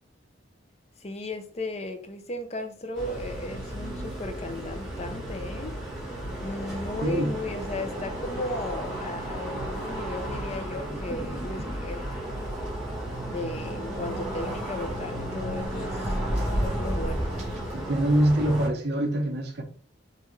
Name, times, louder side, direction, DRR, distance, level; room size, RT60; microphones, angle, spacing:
voice 1, 1.0-5.8 6.4-12.1 13.2-16.2 16.6-17.3, left 2 dB, 35° left, 0.6 m, -35 dB
sound 1, 2.9-18.7, right 1 dB, 5° right, 1.4 m, -34 dB
voice 2, 7.0-7.4 17.7-19.6, right 1 dB, 60° right, 0.7 m, -24 dB
sound 2, 10.8-11.8 12.1-12.2 12.5-12.7 13.9-14.9 15.4-17.7, equal, 35° right, 1.7 m, -32 dB
5.5 x 2.5 x 3.1 m
head